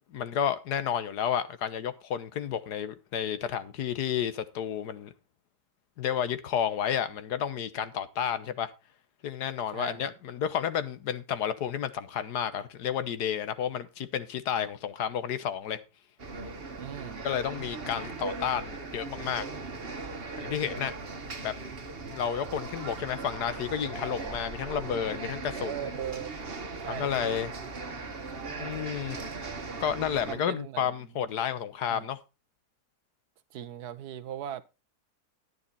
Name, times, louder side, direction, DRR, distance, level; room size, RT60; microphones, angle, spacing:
voice 1, 0.1-5.1 6.0-8.7 9.2-15.8 17.2-19.4 20.4-20.9 21.4-21.5 22.1-25.7 26.9-27.5 28.6-29.2 29.8-32.2, left 9 dB, 85° left, 1.6 m, -31 dB
voice 2, 9.7-10.1 16.8-17.3 25.5-26.3 26.8-27.4 30.2-30.9 31.9-32.1 33.5-34.6, right 10 dB, 80° right, 1.4 m, -39 dB
sound 1, 16.2-30.4, right 3 dB, 40° right, 1.6 m, -39 dB
10.5 x 9.7 x 4.1 m
omnidirectional pair, 1.7 m